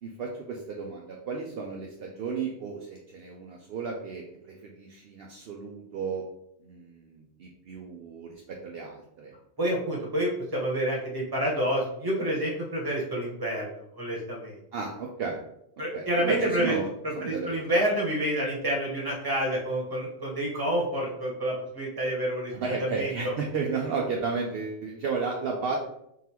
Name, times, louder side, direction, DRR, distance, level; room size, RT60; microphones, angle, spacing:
voice 1, 0.0-6.2 6.6-9.3 14.7-15.4 15.9-16.9 17.1-17.5 22.5-25.8, right 4 dB, 65° right, -1 dB, 0.7 m, -33 dB
voice 2, 9.6-14.6 15.8-16.8 17.0-22.5 22.8-23.3, right 1 dB, 20° right, -3 dB, 1.1 m, -28 dB
3.9 x 3.6 x 2.9 m, 0.77 s
omnidirectional pair, 1.1 m